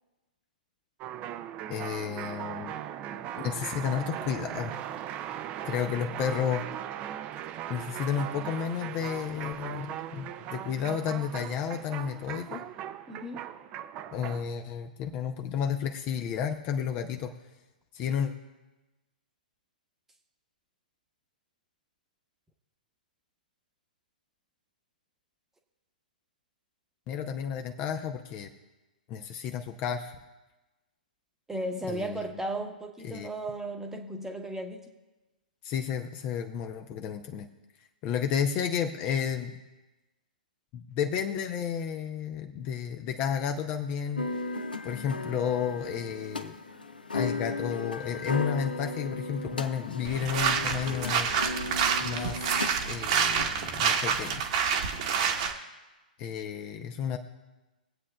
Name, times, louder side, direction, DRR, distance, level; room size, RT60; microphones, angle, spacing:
sound 1, 1.0-14.5, right 11 dB, 30° right, 0.6 m, -39 dB
voice 1, 1.7-2.7 3.4-4.7 5.6-6.7 7.7-12.7 14.1-17.3 17.9-18.3 27.1-28.5 29.1-30.2 31.9-32.4 33.0-33.3 35.6-37.5 38.0-39.6 40.7-44.3 44.8-46.5 47.1-51.3 52.0-54.4 56.2-57.2, left 8 dB, 30° left, 6 dB, 0.7 m, -32 dB
voice 2, 13.1-13.5 31.5-34.8, right 1 dB, 10° right, 4 dB, 1.1 m, -35 dB
sound 2, 44.2-53.4, left 3 dB, 80° left, 0.9 m, -36 dB
sound 3, 50.0-55.5, right 7 dB, 45° right, 1.3 m, -28 dB
23.0 x 8.4 x 2.3 m, 1.1 s
figure-of-eight pair, 115°, 5 cm